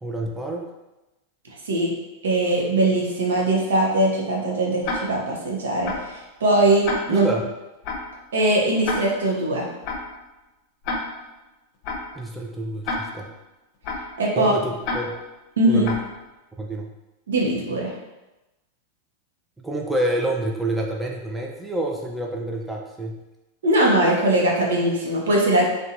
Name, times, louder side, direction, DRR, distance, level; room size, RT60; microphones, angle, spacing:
voice 1, 0.0-0.6 7.1-7.5 12.1-13.3 14.4-15.2 15.7-16.0 16.6-16.9 19.6-23.2, right 1 dB, 10° right, 0 dB, 0.4 m, -28 dB
voice 2, 2.2-7.3 8.3-9.7 14.2-14.5 15.6-15.8 17.3-17.9 23.6-25.6, right 1 dB, 80° right, -2 dB, 0.6 m, -21 dB
Tick-tock, 4.8-5.3 5.8-6.2 6.8-7.3 7.8-8.2 8.8-9.3 9.8-10.2 10.8-11.3 11.8-12.2 12.8-13.3 13.8-14.2 14.8-15.3 15.8-16.2, left 3 dB, 50° left, 0.6 m, -30 dB
2.6 x 2.2 x 2.5 m, 1.0 s
hypercardioid pair, 100°, 0 cm